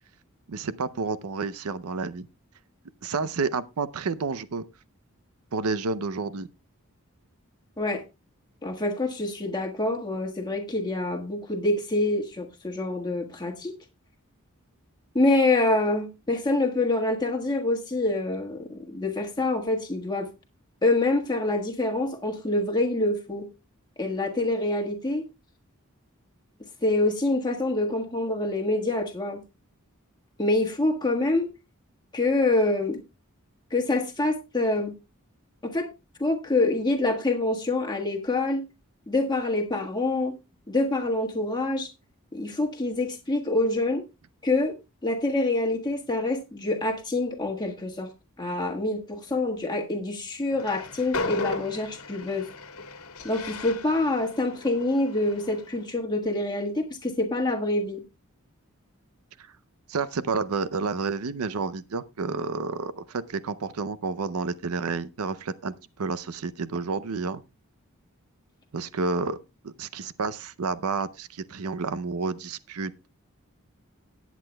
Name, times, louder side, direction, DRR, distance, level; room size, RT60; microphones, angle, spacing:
voice 1, 0.5-2.3 3.0-4.6 5.5-6.5 59.9-67.4 68.7-69.4 69.6-73.1, right 4 dB, 80° right, 0.6 m, -30 dB
voice 2, 8.6-13.7 15.1-20.3 20.8-23.5 24.0-25.2 26.8-29.4 30.4-31.5 32.1-33.0 33.7-34.9 35.6-35.9 36.2-38.7 39.1-40.3 40.7-41.9 42.3-44.0 44.4-44.7 45.0-48.1 48.4-52.5 53.2-58.0, left 2 dB, 20° left, 1.5 m, -26 dB
Train, 50.5-55.8, left 3 dB, 80° left, 1.4 m, -36 dB
18.0 x 8.3 x 2.2 m
head